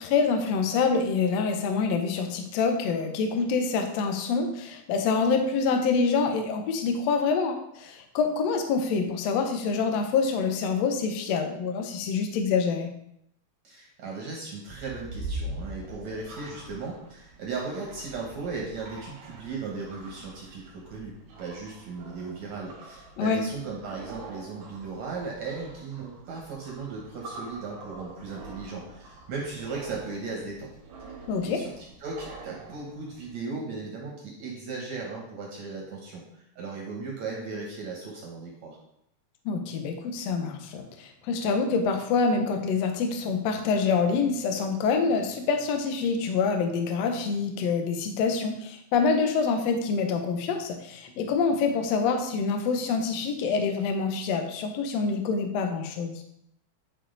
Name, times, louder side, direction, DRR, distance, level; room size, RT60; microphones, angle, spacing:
voice 1, 0.0-12.9 23.2-23.4 31.3-31.6 39.4-56.2, left 5 dB, 90° left, 5 dB, 1.5 m, -26 dB
voice 2, 13.6-21.1 21.4-30.7 31.4-31.7 32.0-38.8, right 4 dB, 65° right, -2 dB, 2.0 m, -37 dB
sound 1, 14.6-33.4, right 2 dB, 90° right, 3.5 m, -44 dB
10.0 x 4.6 x 3.9 m, 0.76 s
omnidirectional pair, 4.3 m